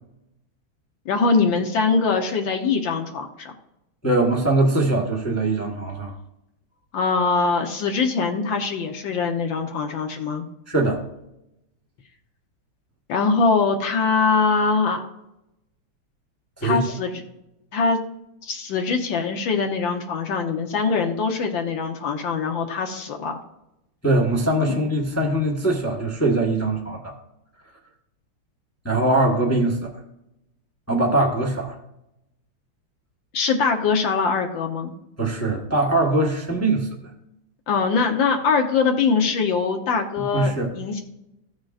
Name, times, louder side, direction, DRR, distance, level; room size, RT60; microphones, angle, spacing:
voice 1, 1.1-3.5 6.9-10.5 13.1-15.0 16.6-17.2 17.7-18.0 18.4-23.4 24.7-24.8 33.3-34.9 37.7-41.0, left 4 dB, 70° left, 4 dB, 1.4 m, -22 dB
voice 2, 4.0-6.1 10.7-11.0 16.6-16.8 24.0-27.1 28.8-29.9 30.9-31.8 35.2-36.9 40.2-40.7, right 2 dB, 15° left, -1 dB, 0.5 m, -22 dB
15.0 x 6.4 x 2.4 m, 0.87 s
omnidirectional pair, 2.4 m